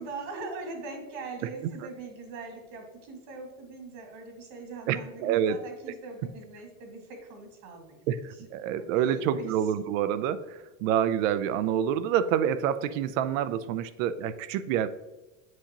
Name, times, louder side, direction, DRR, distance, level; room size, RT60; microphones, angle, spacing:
voice 1, 0.0-8.0 8.6-9.5, right 3 dB, 60° right, 2 dB, 2.1 m, -41 dB
voice 2, 4.9-5.6 8.1-14.9, right 9 dB, 85° right, 14 dB, 0.6 m, -27 dB
7.7 x 5.3 x 2.9 m, 1.1 s
supercardioid pair, 160°, 38 cm